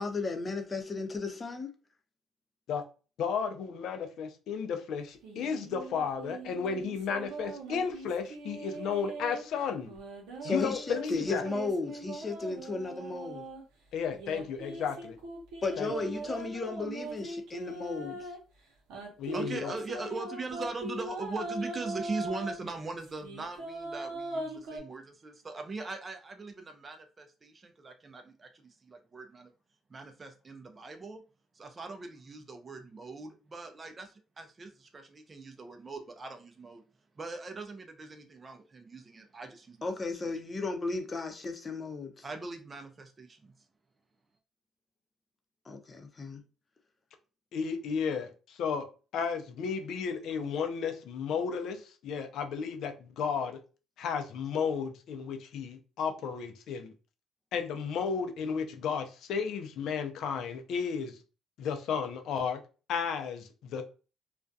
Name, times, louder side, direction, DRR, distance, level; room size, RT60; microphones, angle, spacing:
voice 1, 0.0-1.7 10.4-13.4 15.6-18.3 39.8-42.2 45.7-46.4, left 3 dB, 30° left, 0.6 m, -34 dB
voice 2, 3.2-9.9 10.4-11.4 13.9-15.2 15.8-15.9 19.2-19.7 47.5-48.9 49.1-53.6 54.0-56.9 57.5-61.2 61.6-62.6 62.9-63.8, left 6 dB, 75° left, 0.5 m, -33 dB
sound 1, 5.2-9.4 9.9-13.6 14.1-18.4 18.9-22.5 23.0-24.8, right 2 dB, 85° right, 0.8 m, -40 dB
voice 3, 19.3-29.5 29.9-31.2 31.5-36.8 37.2-39.9 40.2-40.4 42.2-43.5, right 3 dB, 35° right, 0.5 m, -41 dB
2.4 x 2.2 x 2.5 m
supercardioid pair, 70°, 0 cm